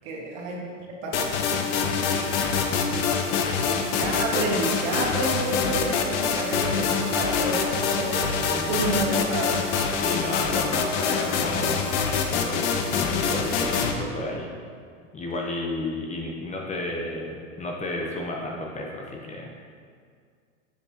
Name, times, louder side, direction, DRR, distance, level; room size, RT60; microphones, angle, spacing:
voice 1, 0.0-0.6 1.0-1.1 2.9-3.2 3.5-9.7, right 2 dB, 60° right, -2 dB, 1.6 m, -30 dB
sound 1, 1.1-13.9, left 6 dB, 65° left, 0.8 m, -25 dB
voice 2, 1.9-2.3 8.5-8.8 10.0-11.9 12.3-14.5 15.1-19.5, left 2 dB, 20° left, -1 dB, 0.7 m, -32 dB
7.0 x 5.3 x 2.8 m, 2.1 s
hypercardioid pair, 105°, 39 cm